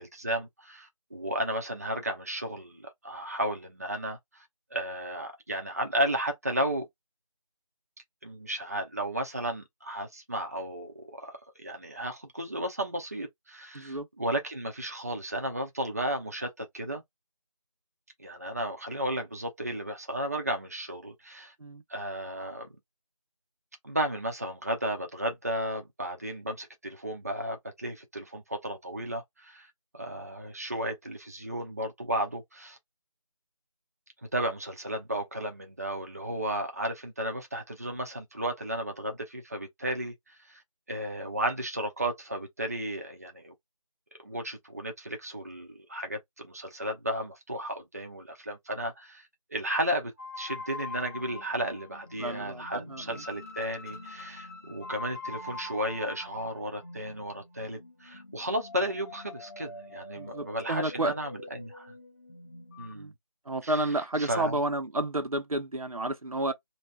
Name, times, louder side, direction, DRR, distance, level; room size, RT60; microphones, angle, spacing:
voice 1, 0.0-4.4 4.7-6.9 8.2-17.0 18.2-21.5 21.9-22.7 23.8-29.7 29.9-32.8 34.3-40.1 40.5-40.6 40.9-43.5 44.2-49.2 49.5-61.9 62.8-63.1 63.6-63.8 64.2-64.6, right 1 dB, 30° right, 0.6 m, -34 dB
voice 2, 13.7-14.1 21.6-21.8 52.2-53.2 60.2-61.1 62.9-63.1 63.5-66.5, right 1 dB, 85° right, 0.8 m, -31 dB
sound 1, 50.2-62.9, left 2 dB, 30° left, 1.0 m, -44 dB
3.0 x 2.7 x 3.1 m
figure-of-eight pair, 170°, 18 cm